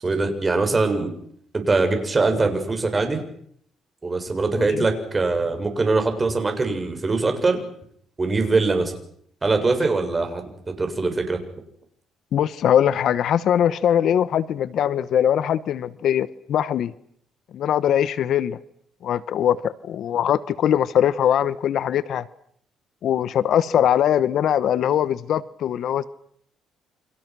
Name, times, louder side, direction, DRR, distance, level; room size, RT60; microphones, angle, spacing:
voice 1, 0.0-1.1 1.5-3.2 4.0-7.6 8.2-8.9 9.4-11.4, right 3 dB, 25° right, 6.8 m, -22 dB
voice 2, 12.3-16.9 17.5-18.6 19.0-22.2 23.0-26.1, left 10 dB, 65° left, 1.0 m, -21 dB
29.0 x 28.0 x 6.2 m
cardioid pair, 115°, 0 cm